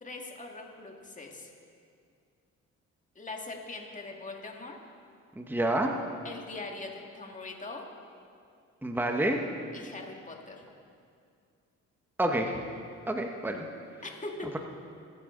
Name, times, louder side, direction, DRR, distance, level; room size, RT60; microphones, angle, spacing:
voice 1, 0.0-1.5 3.2-4.8 6.2-7.9 9.7-10.6 14.0-14.6, left 3 dB, 25° left, 1 dB, 2.1 m, -41 dB
voice 2, 5.4-5.9 8.8-9.4 12.2-12.6 13.1-13.7, right 1 dB, 5° right, 3 dB, 1.1 m, -28 dB
23.0 x 9.8 x 3.9 m, 2.3 s
cardioid pair, 90°, 30 cm